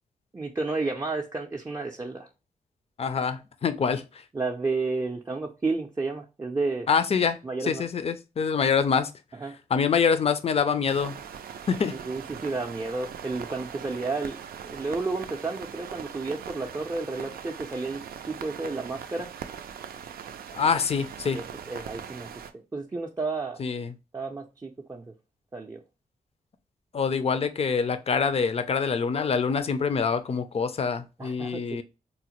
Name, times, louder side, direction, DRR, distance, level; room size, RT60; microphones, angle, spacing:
voice 1, 0.3-2.3 4.3-6.9 7.4-7.8 9.4-9.6 12.0-14.4 14.7-19.3 21.3-23.6 24.1-25.0 25.5-25.8 31.2-31.8, right 3 dB, 20° right, 0.4 m, -31 dB
voice 2, 3.0-4.2 6.9-9.1 9.7-11.2 11.7-11.9 20.5-21.4 23.6-23.9 26.9-31.8, left 6 dB, 40° left, 0.4 m, -25 dB
sound 1, 10.9-22.5, right 8 dB, 85° right, 0.4 m, -41 dB
4.0 x 2.1 x 2.9 m
cardioid pair, 85°, 15 cm